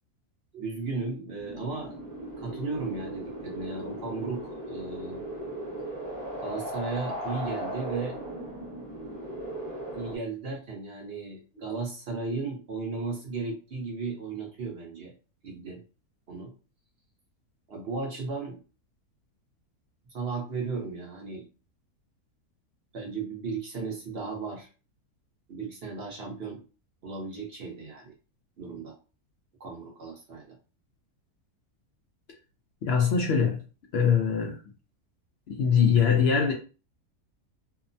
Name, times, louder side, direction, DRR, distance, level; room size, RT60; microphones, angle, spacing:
voice 1, 0.5-2.0 2.4-5.2 6.4-8.2 9.9-15.1 15.4-15.8 16.3-16.5 17.7-18.6 20.1-21.5 22.9-24.7 25.5-26.6 27.0-28.1 28.6-28.9 29.6-30.6, right 4 dB, 50° right, 0.9 m, -35 dB
sound 1, 1.4-10.2, right 1 dB, 25° right, 1.0 m, -37 dB
voice 2, 32.8-33.6 33.9-34.6 35.5-36.5, left 6 dB, 70° left, 0.6 m, -22 dB
2.8 x 2.1 x 2.6 m
omnidirectional pair, 1.6 m